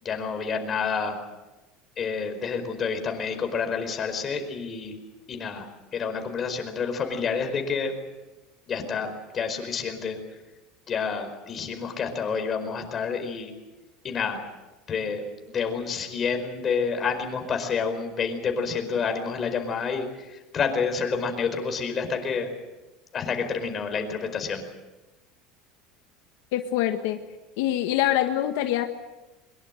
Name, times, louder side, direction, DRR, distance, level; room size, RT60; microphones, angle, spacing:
voice 1, 0.0-1.2 2.0-5.0 5.3-5.7 5.9-7.9 8.7-10.2 10.9-13.5 14.0-14.4 14.9-15.2 15.5-22.5 23.1-24.6, left 5 dB, 30° left, 6 dB, 4.8 m, -29 dB
voice 2, 26.5-27.2 27.6-28.9, left 12 dB, 80° left, 5 dB, 1.6 m, -24 dB
23.5 x 22.0 x 7.9 m, 1.1 s
supercardioid pair, 135°, 0 cm